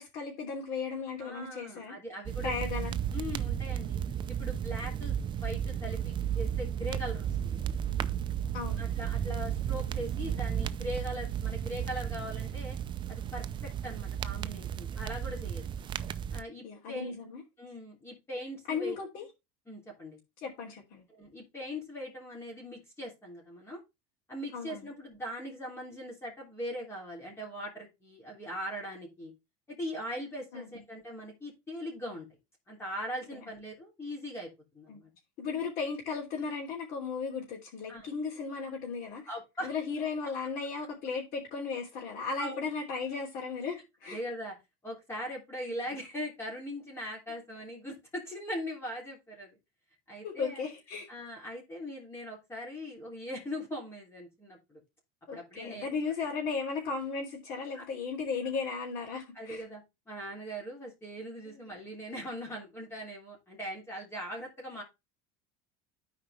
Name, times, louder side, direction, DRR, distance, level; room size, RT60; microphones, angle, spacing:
voice 1, 0.0-1.9 2.4-2.9 8.5-8.9 16.6-17.4 18.7-19.2 20.4-21.1 24.5-24.8 30.5-30.7 33.3-33.4 34.9-35.0 35.4-39.2 39.6-44.2 50.2-51.1 55.3-59.6 61.5-61.6, left 5 dB, 55° left, 3.3 m, -36 dB
voice 2, 1.2-2.5 3.1-4.0 4.3-7.6 8.8-12.8 13.1-15.6 16.3-17.1 17.6-19.0 19.7-20.2 21.1-23.8 24.3-29.3 29.7-32.3 32.7-35.1 37.9-38.1 39.3-39.7 42.4-42.6 44.1-44.5 44.8-49.6 50.1-50.6 51.1-54.8 55.3-55.9 57.7-57.9 59.3-64.8, equal, 15° left, 3.3 m, -40 dB
sound 1, 2.3-16.4, right 9 dB, 25° right, 0.5 m, -34 dB
12.0 x 5.0 x 3.3 m
cardioid pair, 145°, 18 cm